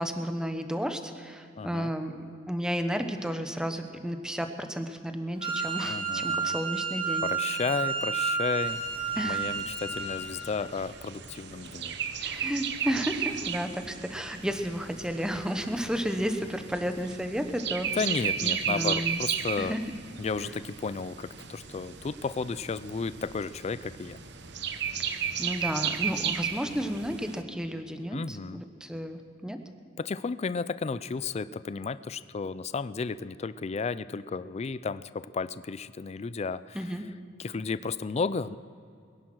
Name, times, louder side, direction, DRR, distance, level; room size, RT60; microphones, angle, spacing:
voice 1, 0.0-7.3 9.2-9.4 12.2-19.2 19.6-19.8 25.0-29.6 36.7-37.0, equal, 5° right, 7 dB, 1.0 m, -32 dB
voice 2, 1.6-1.9 5.9-6.6 7.2-8.8 9.2-11.9 18.0-19.7 20.2-24.2 28.1-28.6 30.0-36.8 37.4-38.6, left 4 dB, 35° left, 15 dB, 0.4 m, -33 dB
Wind instrument woodwind instrument, 5.4-10.2, right 5 dB, 25° right, 2.3 m, -31 dB
sound 1, 8.6-27.4, right 8 dB, 65° right, 0.9 m, -35 dB
22.0 x 10.5 x 6.2 m, 2.4 s
head